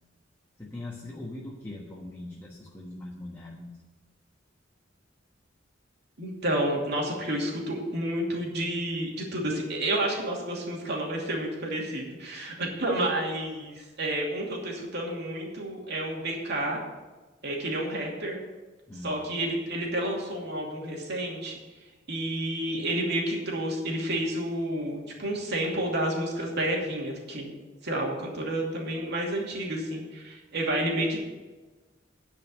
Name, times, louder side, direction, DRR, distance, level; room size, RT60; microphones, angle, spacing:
voice 1, 0.6-3.8 18.9-19.3, left 2 dB, 10° left, -4 dB, 1.3 m, -41 dB
voice 2, 6.2-16.8 17.4-18.4 19.0-21.6 22.1-27.5 27.8-31.3, right 1 dB, 60° right, -1 dB, 2.7 m, -30 dB
10.0 x 5.3 x 8.3 m, 1.3 s
head